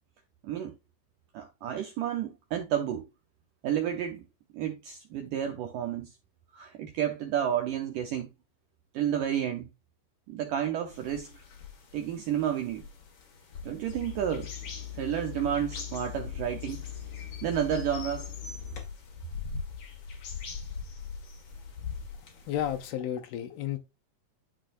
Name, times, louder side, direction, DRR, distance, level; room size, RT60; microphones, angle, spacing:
voice 1, 0.4-0.8 1.3-3.1 3.6-4.2 4.5-6.1 6.5-8.3 8.9-9.7 10.3-11.4 11.9-12.8 13.6-14.5 14.9-16.8 17.4-18.3, right 10 dB, 75° right, 1.9 m, -31 dB
sound 1, 10.9-22.9, left 5 dB, 45° left, 2.2 m, -42 dB
sound 2, 13.9-18.8, left 12 dB, 20° right, 1.4 m, -41 dB
voice 2, 22.3-23.8, left 11 dB, 80° left, 2.4 m, -33 dB
12.5 x 4.5 x 2.6 m
omnidirectional pair, 4.8 m